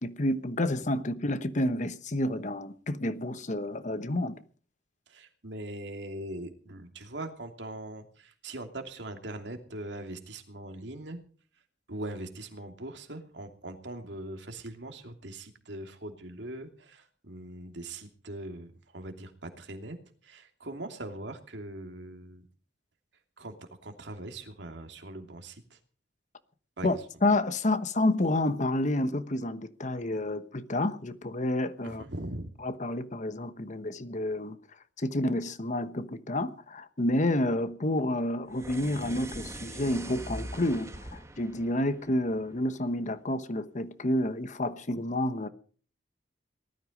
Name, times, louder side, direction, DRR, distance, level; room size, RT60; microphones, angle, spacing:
voice 1, 0.0-4.4 26.8-32.0 32.6-34.6 35.0-45.5, left 1 dB, 40° left, 1.1 m, -29 dB
voice 2, 5.1-11.2 11.9-20.0 20.2-22.4 23.4-23.5 23.8-25.8 26.8-27.0 31.8-32.5, right 1 dB, 70° right, 2.8 m, -41 dB
sound 1, 38.5-42.9, right 1 dB, 15° right, 2.0 m, -42 dB
19.0 x 13.0 x 5.3 m
head